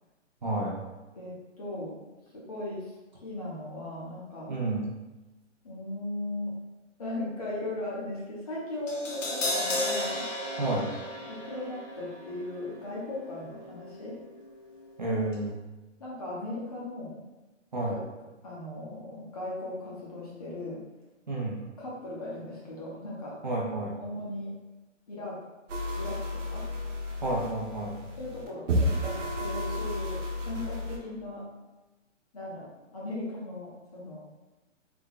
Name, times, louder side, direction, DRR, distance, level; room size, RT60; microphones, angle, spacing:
voice 1, 0.4-0.8 4.5-5.0 10.6-10.9 15.0-15.6 17.7-18.0 21.3-21.7 23.4-24.0 27.2-28.0, right 2 dB, 40° right, -4 dB, 0.6 m, -30 dB
voice 2, 1.1-2.1 2.3-2.9 3.2-4.5 5.6-6.6 7.0-10.2 11.3-14.2 16.0-17.2 17.9-18.0 18.4-20.8 21.8-23.4 24.0-24.5 25.1-25.4 26.0-26.7 28.2-30.2 30.4-31.5 32.3-34.2, left 1 dB, 30° left, -5 dB, 0.7 m, -37 dB
Crash cymbal, 8.9-15.0 15.3-15.4, left 1 dB, 80° left, 1.1 m, -35 dB
sound 1, 25.7-31.0, left 1 dB, 75° right, 0.8 m, -32 dB
3.4 x 2.2 x 3.7 m, 1.1 s
hypercardioid pair, 175°, 37 cm